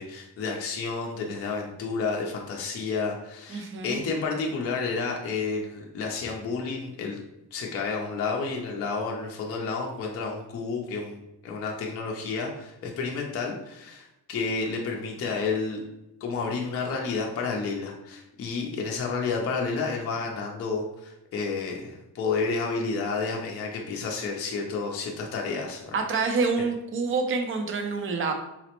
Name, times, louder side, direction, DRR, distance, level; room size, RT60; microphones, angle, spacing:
voice 1, 0.0-7.2 7.5-15.8 16.2-26.4, left 4 dB, 35° left, -1 dB, 0.5 m, -31 dB
voice 2, 3.5-4.0 25.9-28.3, right 4 dB, 30° right, 4 dB, 0.5 m, -27 dB
4.0 x 2.0 x 2.9 m, 0.90 s
cardioid pair, 130°, 41 cm